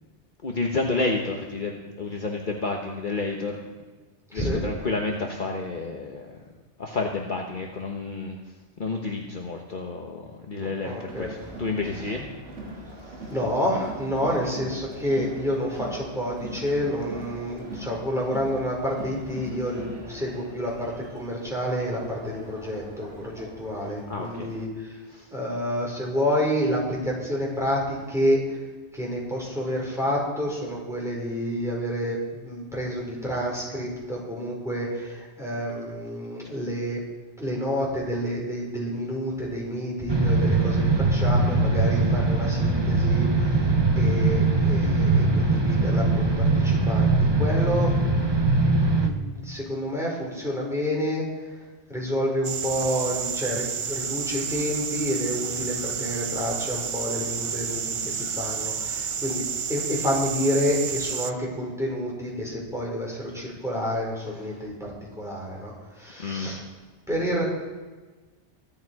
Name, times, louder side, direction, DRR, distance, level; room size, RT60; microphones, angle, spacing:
voice 1, 0.4-3.6 4.3-6.4 6.8-8.4 8.8-12.3 13.1-13.3 24.1-24.5 25.1-25.3 64.5-64.7 65.3-65.6 66.2-66.6, left 3 dB, 45° left, 0 dB, 1.3 m, -30 dB
voice 2, 4.3-4.6 10.6-11.3 13.3-24.9 25.3-28.6 28.9-37.0 37.4-48.3 48.7-51.2 51.9-66.6 67.1-67.4, equal, ahead, -4 dB, 4.9 m, -29 dB
Crowd, 11.1-24.6, right 1 dB, 80° right, 3.0 m, -41 dB
sound 1, 40.1-49.1, right 3 dB, 25° right, 1.1 m, -21 dB
sound 2, 52.4-61.3, right 6 dB, 55° right, 0.3 m, -30 dB
24.0 x 9.0 x 4.8 m, 1.3 s
omnidirectional pair, 1.2 m